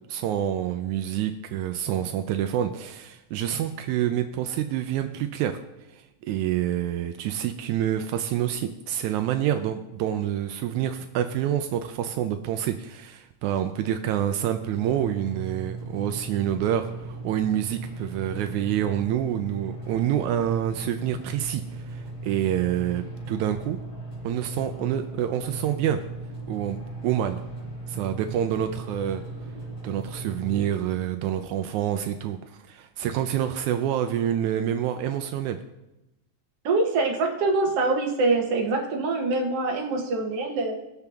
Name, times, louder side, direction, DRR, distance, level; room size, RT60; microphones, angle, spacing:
voice 1, 0.1-5.6 5.9-23.8 24.2-26.0 26.5-26.8 27.0-27.4 27.9-29.2 29.8-32.4 32.7-35.6, right 10 dB, 80° right, 7 dB, 2.0 m, -27 dB
sound 1, 14.7-30.7, right 2 dB, 45° left, 4.3 m, -37 dB
voice 2, 36.6-40.8, right 3 dB, 55° right, 1 dB, 2.3 m, -24 dB
18.5 x 6.8 x 3.5 m, 0.94 s
omnidirectional pair, 3.4 m